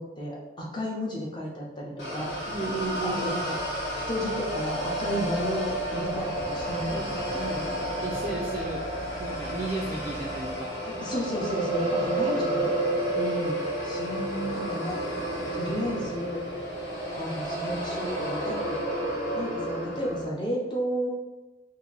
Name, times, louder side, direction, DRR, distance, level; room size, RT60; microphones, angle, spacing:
voice 1, 0.0-2.3 3.0-3.5 4.1-7.0 10.8-12.7 13.8-15.0 15.5-16.4 17.1-18.8 19.3-21.1, equal, 25° left, -4 dB, 0.7 m, -32 dB
sound 1, 2.0-20.2, right 1 dB, 65° left, 1.3 m, -31 dB
sound 2, 2.1-10.5, left 1 dB, 80° left, 0.6 m, -44 dB
voice 2, 2.5-3.4 6.9-7.6 8.0-8.8 9.2-10.7 13.1-13.6, right 2 dB, 30° right, -3 dB, 0.4 m, -34 dB
2.8 x 2.5 x 3.9 m, 1.1 s
head